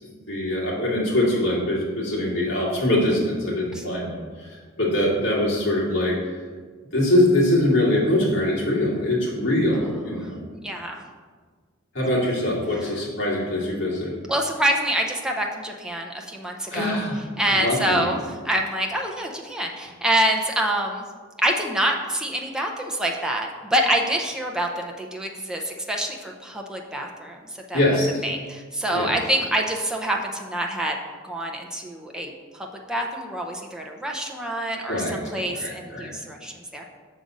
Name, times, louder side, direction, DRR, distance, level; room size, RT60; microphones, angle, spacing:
voice 1, 0.0-4.5 4.8-6.2 6.9-10.4 11.9-14.1 16.7-17.2 17.5-18.1 27.7-28.2 28.9-29.1 34.9-35.2 35.6-36.1, left 1 dB, 65° left, -5 dB, 2.3 m, -23 dB
voice 2, 10.6-11.0 12.8-13.0 14.3-17.0 17.4-21.1 21.4-31.0 31.2-36.8, right 1 dB, 5° right, 0 dB, 0.6 m, -26 dB
6.7 x 4.0 x 6.2 m, 1.5 s
head